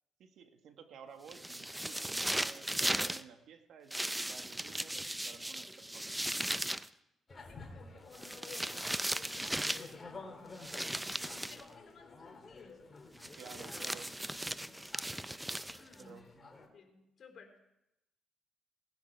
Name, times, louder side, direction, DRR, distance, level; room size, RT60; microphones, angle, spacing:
voice 1, 0.2-6.3 13.3-14.1 16.0-16.5, right 7 dB, 75° right, 6 dB, 1.6 m, -53 dB
sound 1, 1.3-3.2 3.9-6.9 8.1-9.9 10.6-11.6 13.2-16.0, right 1 dB, 10° right, 0.5 m, -37 dB
sound 2, 7.3-16.7, left 3 dB, 30° left, 2.4 m, -52 dB
voice 2, 7.4-10.6 11.2-12.9 13.5-13.9 14.6-14.8 15.7-16.2 16.7-17.6, left 5 dB, 50° left, 3 dB, 4.0 m, -56 dB
19.0 x 10.0 x 4.7 m, 0.88 s
cardioid pair, 90°, 0 cm